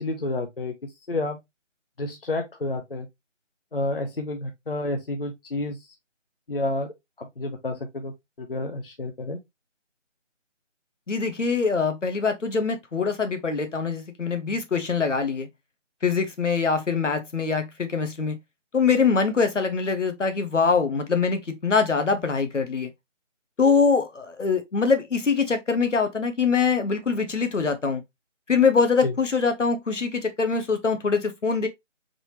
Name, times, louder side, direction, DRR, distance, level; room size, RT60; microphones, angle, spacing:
voice 1, 0.0-1.4 2.0-3.1 3.7-5.9 6.5-9.4 29.0-29.1, left 2 dB, 50° left, 0.6 m, -30 dB
voice 2, 11.1-15.5 16.0-18.4 18.7-22.9 23.6-28.0 28.5-31.7, left 5 dB, 70° left, 1.1 m, -23 dB
4.0 x 3.3 x 2.8 m
figure-of-eight pair, 170°, 38 cm